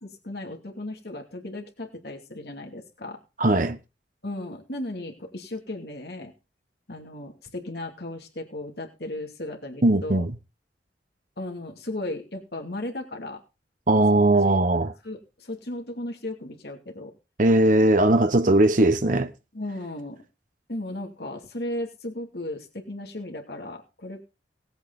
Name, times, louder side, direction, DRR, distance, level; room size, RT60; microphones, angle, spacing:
voice 1, 0.0-3.2 4.2-6.3 6.9-10.2 11.4-13.4 14.4-14.5 15.0-17.1 18.0-18.1 19.5-20.2 20.7-24.2, left 1 dB, 60° left, 2.6 m, -35 dB
voice 2, 3.4-3.8 9.8-10.3 13.9-14.9 17.4-19.3, right 1 dB, 45° right, 1.0 m, -19 dB
18.5 x 8.2 x 4.0 m
head